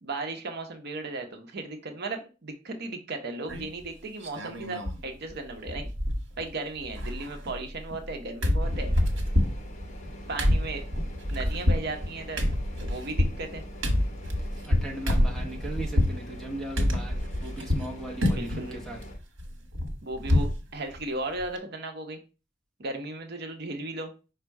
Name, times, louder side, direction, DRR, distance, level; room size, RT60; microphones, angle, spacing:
voice 1, 0.0-5.9 6.4-8.9 10.3-10.8 11.3-12.4 12.8-13.6 18.3-19.0 20.0-22.2 22.8-24.1, right 2 dB, 55° right, 5 dB, 0.7 m, -36 dB
sound 1, 3.5-3.8 4.2-5.0 5.3-5.4 5.7-6.5 6.8-8.1 8.4-16.2 16.8-17.9 18.2-18.7 19.0-20.6 20.9-21.0 21.4-21.6, left 1 dB, 80° right, 1.1 m, -27 dB
sound 2, 8.6-19.2, equal, 40° left, 0.8 m, -43 dB
voice 2, 14.6-17.1 17.4-19.0, right 1 dB, ahead, 0 dB, 0.9 m, -38 dB
5.1 x 2.2 x 4.6 m, 0.31 s
head